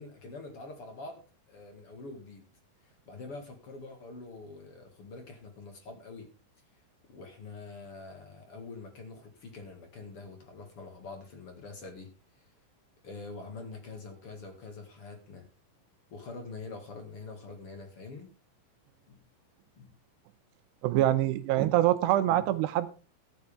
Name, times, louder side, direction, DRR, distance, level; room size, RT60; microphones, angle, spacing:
voice 1, 0.0-2.5 2.8-6.3 7.1-12.4 13.0-15.5 16.1-18.3 19.1-19.2 19.8-19.9, left 3 dB, 45° left, 1.9 m, -45 dB
voice 2, 20.8-22.9, right 13 dB, 75° right, 2.7 m, -25 dB
14.0 x 10.5 x 3.5 m
omnidirectional pair, 5.5 m